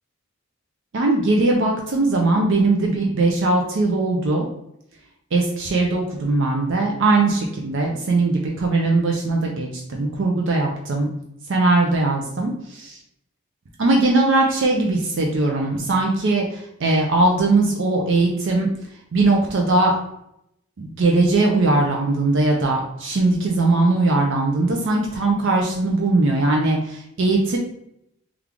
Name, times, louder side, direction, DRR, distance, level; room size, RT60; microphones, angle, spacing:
voice 1, 0.9-4.5 5.3-11.1 11.5-13.0 13.8-18.7 19.1-20.0 20.8-27.6, right 2 dB, 55° right, 0 dB, 0.4 m, -20 dB
3.2 x 2.4 x 3.5 m, 0.77 s
head